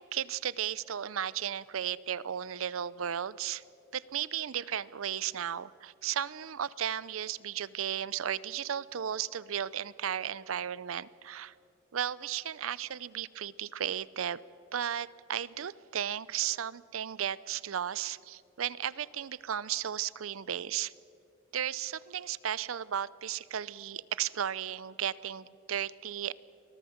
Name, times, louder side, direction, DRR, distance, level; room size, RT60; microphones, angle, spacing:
voice 1, 0.0-3.6 3.9-11.5 11.9-14.4 14.7-20.9 21.5-26.3, right 9 dB, 90° right, 20 dB, 0.6 m, -35 dB
24.0 x 17.5 x 7.2 m, 2.5 s
head